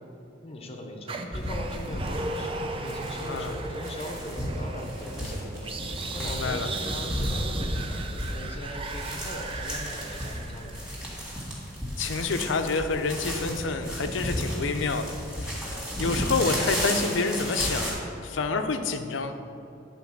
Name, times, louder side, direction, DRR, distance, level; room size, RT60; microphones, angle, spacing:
voice 1, 0.4-10.9, left 1 dB, 30° left, 2 dB, 0.6 m, -40 dB
sound 1, 1.1-11.2, right 2 dB, 30° right, 0.4 m, -36 dB
sound 2, 1.3-17.9, equal, 5° right, 1.8 m, -33 dB
voice 2, 6.2-6.7 12.0-15.1 15.4-15.5 16.0-17.9 18.2-19.3, left 4 dB, 75° left, 8 dB, 0.5 m, -28 dB
9.5 x 3.9 x 5.9 m, 2.8 s
head